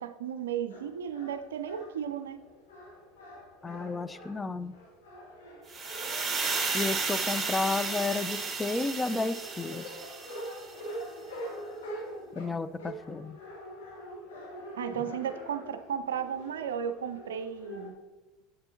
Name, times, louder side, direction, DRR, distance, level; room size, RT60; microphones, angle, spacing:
voice 1, 0.0-2.4 14.7-17.9, right 8 dB, 75° right, 10 dB, 0.4 m, -34 dB
sound 1, 0.7-17.9, equal, 75° left, 1.3 m, -45 dB
voice 2, 3.6-4.7 6.7-10.0 12.3-13.4, left 3 dB, 15° left, 13 dB, 0.3 m, -32 dB
sound 2, 5.7-10.7, right 4 dB, 20° right, 1.7 m, -33 dB
7.8 x 6.8 x 2.8 m, 1.2 s
figure-of-eight pair, 70°, 0 cm